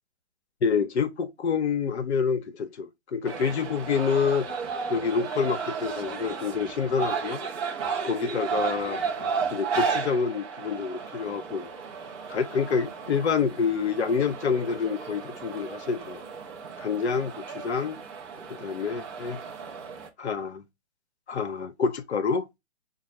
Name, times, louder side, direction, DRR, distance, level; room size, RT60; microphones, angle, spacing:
voice 1, 0.6-4.5 4.9-7.4 8.0-9.0 9.5-11.7 12.3-16.2 16.8-18.0 18.5-19.4 20.2-20.6 21.3-22.4, left 6 dB, 65° left, 0.7 m, -27 dB
sound 1, 3.2-20.1, right 5 dB, 25° right, 0.7 m, -34 dB
6.5 x 2.3 x 3.0 m
figure-of-eight pair, 130°, 36 cm